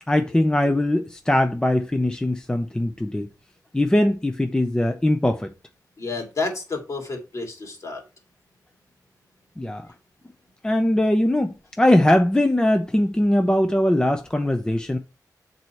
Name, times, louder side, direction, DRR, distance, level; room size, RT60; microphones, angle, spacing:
voice 1, 0.1-3.3 3.7-5.5 9.6-9.9 10.6-15.0, left 1 dB, 10° left, 0.6 m, -21 dB
voice 2, 6.0-8.0, left 3 dB, 50° left, 2.5 m, -30 dB
8.0 x 4.1 x 4.4 m
wide cardioid pair, 120°, 7 cm